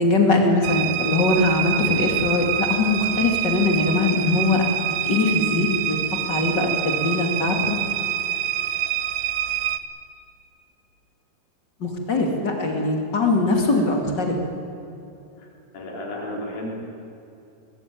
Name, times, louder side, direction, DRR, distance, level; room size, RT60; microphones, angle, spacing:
voice 1, 0.0-4.6 5.0-6.0 6.3-7.8 11.8-14.3, left 2 dB, 30° left, 2 dB, 2.1 m, -21 dB
sound 1, 0.6-9.8, right 12 dB, 75° right, 2.9 m, -26 dB
voice 2, 15.7-16.7, left 1 dB, 50° left, -2 dB, 5.6 m, -33 dB
21.5 x 20.5 x 9.3 m, 2.8 s
omnidirectional pair, 5.3 m